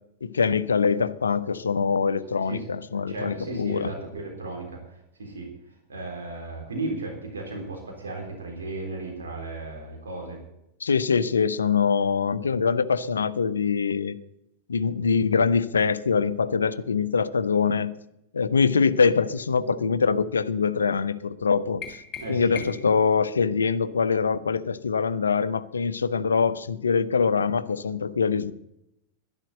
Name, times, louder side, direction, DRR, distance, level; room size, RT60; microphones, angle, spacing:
voice 1, 0.2-3.9 10.8-14.2 14.7-17.9 18.3-21.8 22.3-28.5, left 5 dB, 70° left, 15 dB, 0.6 m, -23 dB
voice 2, 2.2-2.6 2.9-4.8 5.2-5.5 5.9-10.4 22.2-22.6, right 2 dB, 70° right, 1 dB, 3.8 m, -35 dB
sound 1, 21.8-23.0, left 6 dB, 30° left, 2.4 m, -39 dB
11.5 x 11.0 x 7.8 m, 0.85 s
figure-of-eight pair, 90°, 0 cm